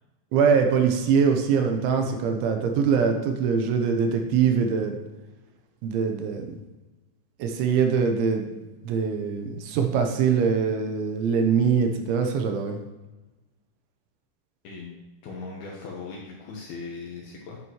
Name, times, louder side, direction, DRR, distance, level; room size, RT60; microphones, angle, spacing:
voice 1, 0.3-5.0 5.8-6.5 7.4-8.4 8.8-12.8, right 6 dB, 80° right, 5 dB, 3.1 m, -23 dB
voice 2, 14.6-17.6, left 4 dB, 70° left, -2 dB, 2.4 m, -39 dB
11.0 x 8.6 x 3.1 m, 1.2 s
omnidirectional pair, 5.6 m